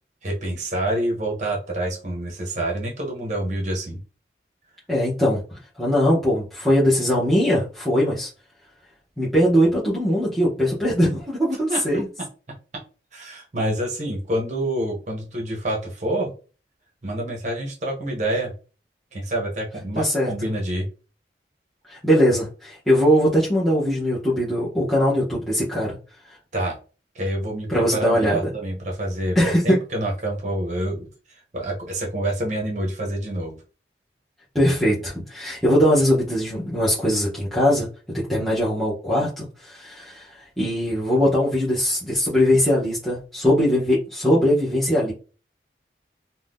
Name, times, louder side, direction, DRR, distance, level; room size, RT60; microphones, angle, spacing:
voice 1, 0.2-4.0 11.7-11.8 12.7-12.8 13.1-16.3 17.0-18.5 19.1-20.9 26.5-26.8 27.1-29.4 29.6-33.6, right 1 dB, 40° right, 0 dB, 0.7 m, -27 dB
voice 2, 4.9-8.3 9.2-12.1 20.0-20.3 21.9-26.0 27.7-28.4 29.3-29.8 34.5-37.9 38.1-45.1, equal, ahead, -9 dB, 0.7 m, -21 dB
2.6 x 2.1 x 3.4 m, 0.35 s
head